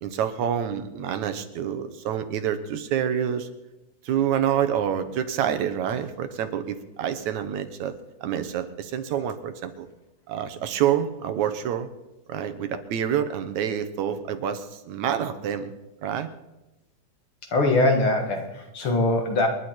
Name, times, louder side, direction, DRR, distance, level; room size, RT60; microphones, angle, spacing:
voice 1, 0.0-3.5 4.0-7.9 8.2-9.9 10.3-11.9 12.3-15.7 16.0-16.3, right 9 dB, 75° right, 10 dB, 2.4 m, -27 dB
voice 2, 17.5-19.5, left 2 dB, 50° left, 3 dB, 2.4 m, -22 dB
28.0 x 11.0 x 4.5 m, 1.0 s
omnidirectional pair, 3.4 m